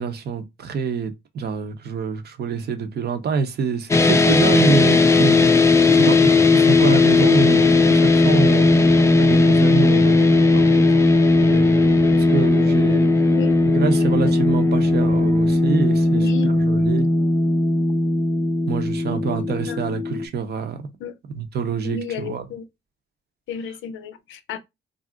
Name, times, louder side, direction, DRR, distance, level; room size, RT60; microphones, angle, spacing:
voice 1, 0.0-11.0 11.4-13.2 13.6-17.1 18.7-20.9 21.3-22.4, right 5 dB, 55° right, 0.7 m, -26 dB
sound 1, 3.9-20.3, left 2 dB, 15° left, 0.3 m, -17 dB
voice 2, 16.1-16.8 19.1-19.8 21.0-21.1 21.8-22.7 23.5-24.6, left 8 dB, 75° left, 0.5 m, -32 dB
2.4 x 2.0 x 3.6 m
cardioid pair, 90°, 20 cm